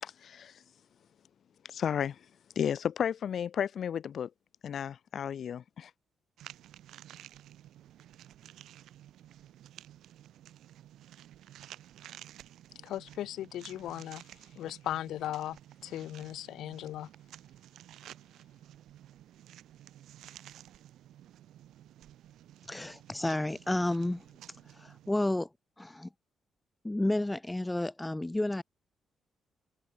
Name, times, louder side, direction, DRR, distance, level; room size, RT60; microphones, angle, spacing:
voice 1, 0.0-0.6 1.6-2.3 2.6-4.3 4.6-5.9, left 8 dB, 45° left, 2.6 m, -33 dB
sound 1, 6.4-25.2, right 12 dB, 80° right, 3.4 m, -53 dB
voice 2, 12.8-14.2 14.6-15.6 15.8-17.1, left 12 dB, 80° left, 4.3 m, -37 dB
voice 3, 22.7-24.2 24.7-25.5 25.8-26.1 26.8-28.6, left 1 dB, 10° left, 0.6 m, -31 dB
cardioid pair, 170°, 0 cm